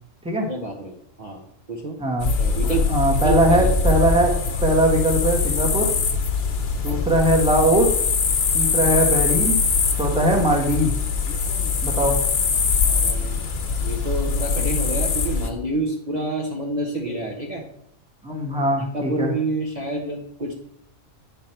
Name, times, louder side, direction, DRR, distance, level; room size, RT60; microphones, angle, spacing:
voice 1, 0.5-1.4 1.7-2.0 2.2-2.9 3.2-4.0 6.9-7.0 12.9-13.5 13.8-17.6 18.5-20.5, right 2 dB, 35° right, -2 dB, 1.1 m, -29 dB
voice 2, 2.0-2.3 2.9-5.9 6.8-7.9 8.5-9.6 10.0-10.9 11.8-12.2 18.2-19.3, right 1 dB, 5° right, 0 dB, 1.4 m, -20 dB
sound 1, 2.2-15.5, left 5 dB, 55° left, 1.1 m, -22 dB
9.5 x 5.5 x 4.4 m, 0.72 s
omnidirectional pair, 1.4 m